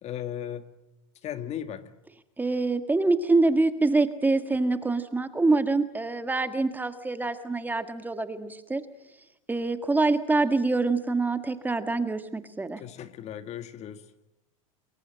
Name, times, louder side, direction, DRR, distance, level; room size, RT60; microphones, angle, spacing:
voice 1, 0.0-0.6 1.2-1.9 12.8-14.0, left 10 dB, 40° left, 10 dB, 1.8 m, -36 dB
voice 2, 2.4-8.8 9.5-12.8, right 3 dB, 10° right, 9 dB, 1.7 m, -25 dB
28.5 x 22.0 x 7.6 m, 0.89 s
supercardioid pair, 115°, 18 cm